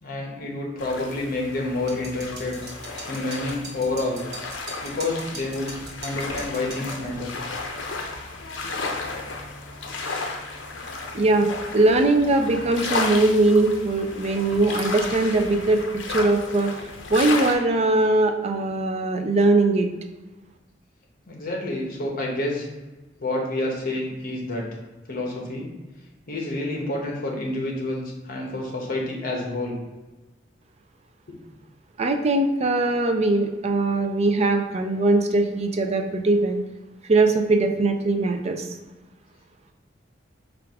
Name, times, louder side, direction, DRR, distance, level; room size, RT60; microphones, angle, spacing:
voice 1, 0.0-2.6 3.1-4.2 4.8-5.7 6.0-7.3 21.3-22.7 23.2-24.6 25.1-25.7 26.3-29.8, left 2 dB, 50° left, 0 dB, 0.9 m, -28 dB
sound 1, 0.8-17.5, left 3 dB, 75° left, 0.6 m, -33 dB
sound 2, 1.9-7.0, right 3 dB, 60° right, 1.1 m, -40 dB
voice 2, 11.1-15.8 16.1-16.7 17.1-19.9 32.0-36.6 37.1-38.6, right 2 dB, 35° right, 5 dB, 0.4 m, -21 dB
4.6 x 2.5 x 3.4 m, 1.1 s
head